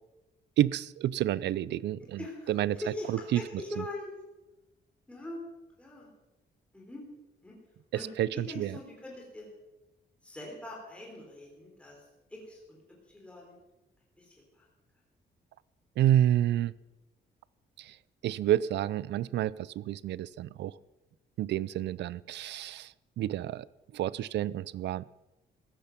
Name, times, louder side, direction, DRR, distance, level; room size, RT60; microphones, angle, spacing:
voice 1, 0.6-2.2 2.5-2.8 3.1-3.4 8.2-8.8 16.0-16.7 17.8-18.0 18.2-20.8 21.4-23.7 23.9-25.0, right 12 dB, 75° right, 21 dB, 0.5 m, -29 dB
voice 2, 2.0-4.1 5.1-5.4 5.8-6.1 6.7-7.0 7.4-7.6 7.9-9.5 10.2-12.8 13.1-13.6 14.2-14.7, left 1 dB, 5° left, -2 dB, 3.5 m, -43 dB
15.5 x 12.5 x 5.9 m, 1.0 s
cardioid pair, 165°, 18 cm